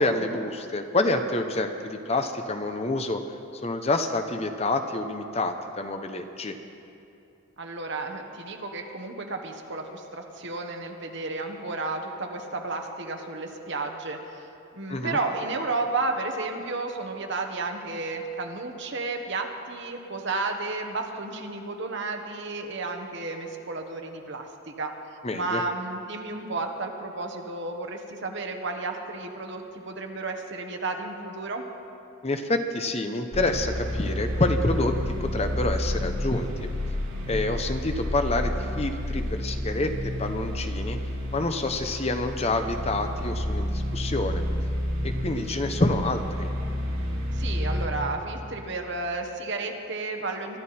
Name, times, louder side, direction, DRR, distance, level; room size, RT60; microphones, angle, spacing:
voice 1, 0.0-3.2 3.6-6.6 14.9-15.2 25.2-25.6 32.2-36.7 37.3-41.0 41.3-44.4 45.0-46.5, left 2 dB, 30° left, 7 dB, 0.7 m, -27 dB
voice 2, 7.6-14.5 14.7-24.9 25.3-31.7 47.3-50.6, right 3 dB, 55° right, 3 dB, 1.4 m, -32 dB
sound 1, 33.3-47.9, left 1 dB, 85° right, 3.3 m, -30 dB
23.5 x 12.5 x 4.3 m, 2.6 s
head